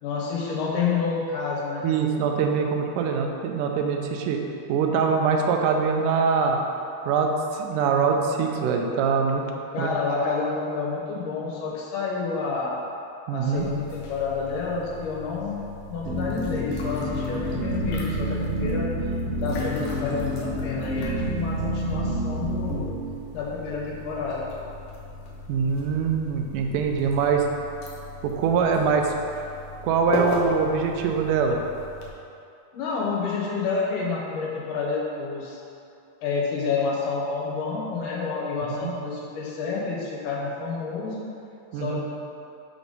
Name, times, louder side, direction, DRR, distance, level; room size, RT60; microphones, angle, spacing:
voice 1, 0.0-1.9 9.7-12.7 13.3-15.6 15.9-18.9 19.4-22.8 23.3-24.5 32.7-35.6 36.2-41.2 41.7-42.0, left 4 dB, 85° left, -5 dB, 2.6 m, -29 dB
voice 2, 1.8-4.4 4.7-6.6 7.1-9.4 9.8-9.9 13.3-13.7 25.5-27.4 28.2-29.1 29.8-31.6 38.7-38.9 41.7-42.0, right 5 dB, 85° right, 3 dB, 2.1 m, -23 dB
sound 1, 13.5-32.1, left 2 dB, 70° left, 1.5 m, -38 dB
sound 2, 16.1-22.9, equal, 55° right, 1.9 m, -28 dB
5.9 x 5.3 x 3.9 m, 2.6 s
omnidirectional pair, 3.7 m